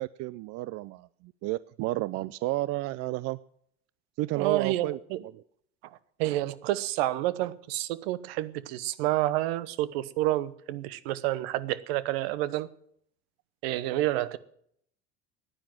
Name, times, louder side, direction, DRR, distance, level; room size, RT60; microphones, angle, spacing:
voice 1, 0.0-3.4 4.2-5.0 5.3-5.4, right 18 dB, 50° right, 19 dB, 0.5 m, -31 dB
voice 2, 4.3-5.2 6.2-12.7 13.6-14.4, right 15 dB, 70° right, 16 dB, 1.0 m, -29 dB
15.0 x 10.5 x 7.4 m, 0.69 s
hypercardioid pair, 80°, 32 cm